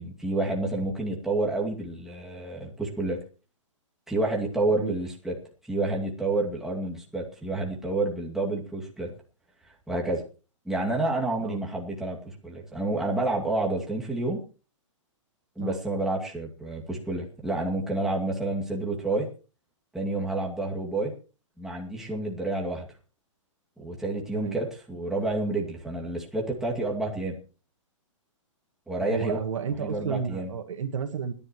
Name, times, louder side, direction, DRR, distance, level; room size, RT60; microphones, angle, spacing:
voice 1, 0.0-3.2 4.1-5.4 5.7-9.1 9.9-10.2 10.7-14.4 15.6-19.3 19.9-21.1 21.6-22.9 23.8-27.4 28.9-29.4 29.8-30.5, right 2 dB, ahead, -3 dB, 2.3 m, -29 dB
voice 2, 29.0-31.3, right 7 dB, 75° right, 6 dB, 1.9 m, -31 dB
28.0 x 10.5 x 3.1 m, 0.36 s
hypercardioid pair, 150°, 17 cm